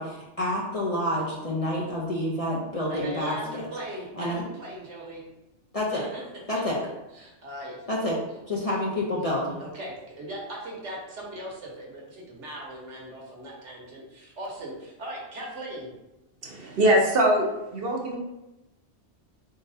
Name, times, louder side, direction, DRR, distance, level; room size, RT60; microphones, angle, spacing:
voice 1, 0.0-3.7 4.1-4.4 5.7-6.1 6.5-6.8 7.9-9.6, left 1 dB, 40° left, -5 dB, 0.6 m, -28 dB
voice 2, 2.9-5.2 5.9-6.2 7.1-7.8 9.5-15.9, right 1 dB, 75° right, -3 dB, 1.4 m, -39 dB
voice 3, 16.4-17.5 17.7-18.2, right 1 dB, 55° right, 0 dB, 0.8 m, -22 dB
3.9 x 3.8 x 2.6 m, 0.96 s
omnidirectional pair, 1.2 m